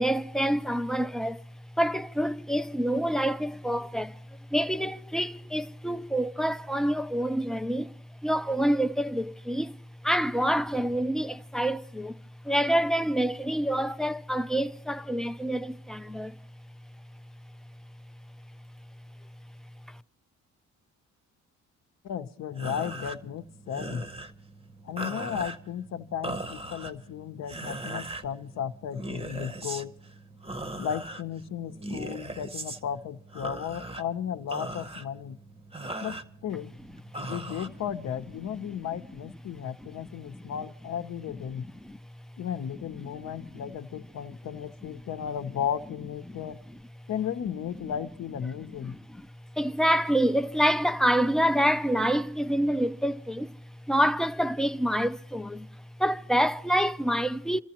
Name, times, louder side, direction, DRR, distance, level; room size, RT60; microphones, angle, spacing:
voice 1, 0.0-1.4 1.8-4.2 4.5-7.9 8.2-9.8 10.0-12.2 12.4-16.3 19.9-20.0 38.9-39.0 40.0-40.1 40.3-40.4 41.6-42.0 43.0-43.8 46.3-46.8 48.8-49.3 49.6-53.6 53.9-57.6, equal, ahead, 0.5 m, -27 dB
voice 2, 22.0-24.0 24.8-29.9 30.8-35.4 36.0-36.7 37.2-41.7 42.4-46.6 47.1-49.0, left 8 dB, 60° left, 0.8 m, -35 dB
sound 1, 22.5-38.4, right 2 dB, 20° right, 0.9 m, -40 dB
27.5 x 14.0 x 3.0 m
cardioid pair, 90°, 30 cm